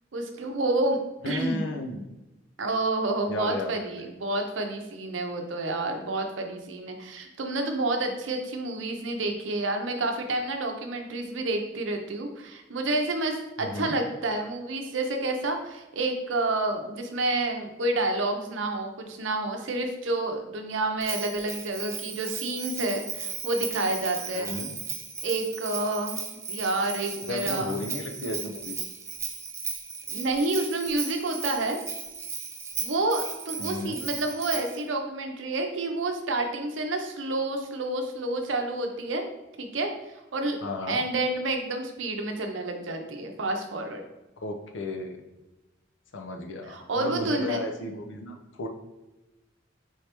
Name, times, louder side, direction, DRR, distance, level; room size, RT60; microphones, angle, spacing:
voice 1, 0.1-1.0 1.2-1.6 2.6-24.5 25.2-26.2 26.5-27.7 30.1-31.8 32.8-39.2 39.6-39.9 40.3-40.6 40.9-44.0 46.7-47.6, right 2 dB, 75° right, 4 dB, 0.6 m, -29 dB
voice 2, 1.2-2.1 3.3-3.9 13.6-14.0 24.3-24.7 27.2-28.8 33.6-34.0 40.6-41.0 44.4-45.2 46.1-48.7, left 2 dB, 70° left, 4 dB, 0.6 m, -34 dB
Bell, 21.0-34.8, right 5 dB, 15° right, 0.3 m, -36 dB
4.6 x 3.3 x 2.9 m, 1.0 s
head